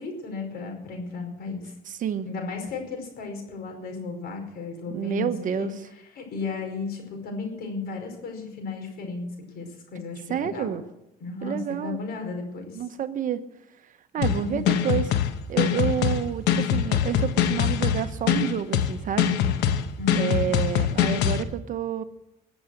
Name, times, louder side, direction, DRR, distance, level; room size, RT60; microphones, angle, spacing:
voice 1, 0.0-1.7 2.2-9.3 9.5-10.7 11.2-12.9 14.2-14.7 20.0-20.5, left 4 dB, 65° left, 3 dB, 5.0 m, -34 dB
voice 2, 1.9-2.3 4.9-5.7 10.3-10.8 11.4-12.0 12.7-13.4 14.1-15.0 15.5-19.4 20.1-22.0, right 9 dB, 50° right, 11 dB, 1.0 m, -29 dB
sound 1, 14.2-21.4, left 9 dB, 85° left, 1.1 m, -23 dB
20.5 x 7.2 x 7.8 m, 0.89 s
cardioid pair, 110°, 17 cm